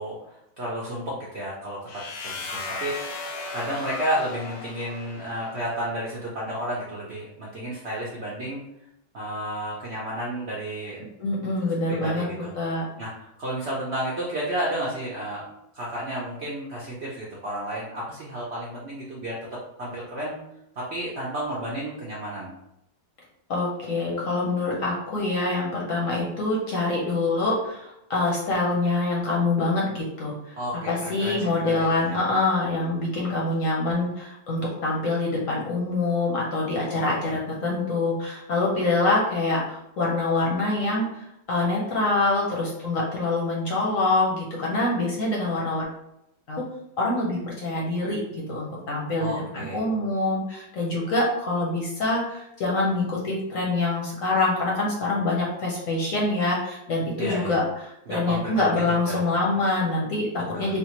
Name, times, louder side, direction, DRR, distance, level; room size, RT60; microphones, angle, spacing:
voice 1, 0.0-1.8 2.2-3.2 3.5-8.6 9.1-11.0 11.5-11.6 11.9-12.5 13.0-15.4 15.7-19.4 19.8-20.4 20.7-22.6 30.6-32.2 36.9-37.3 49.2-49.8 57.2-57.6 58.1-59.2 60.5-60.7, right 1 dB, 60° right, -6 dB, 0.7 m, -32 dB
sound 1, 1.9-5.7, left 3 dB, 85° left, 1.2 m, -36 dB
voice 2, 11.2-12.2 12.6-12.9 23.5-30.6 30.8-45.8 46.5-46.6 47.0-60.8, left 2 dB, 60° left, -3 dB, 0.9 m, -25 dB
3.4 x 2.4 x 2.9 m, 0.82 s
omnidirectional pair, 1.9 m